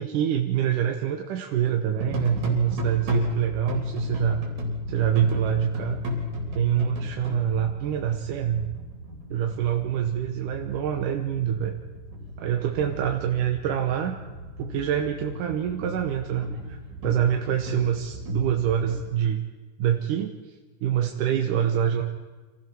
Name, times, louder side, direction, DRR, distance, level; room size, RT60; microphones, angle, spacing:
voice 1, 0.0-4.4 4.9-6.0 6.6-8.7 9.3-11.8 12.4-14.2 14.6-16.8 17.0-19.5 19.8-20.4 20.8-22.0, right 10 dB, 85° right, 3 dB, 2.6 m, -25 dB
sound 1, 1.9-19.1, left 2 dB, 65° right, 5.2 m, -34 dB
27.0 x 16.0 x 6.1 m, 1.3 s
omnidirectional pair, 3.6 m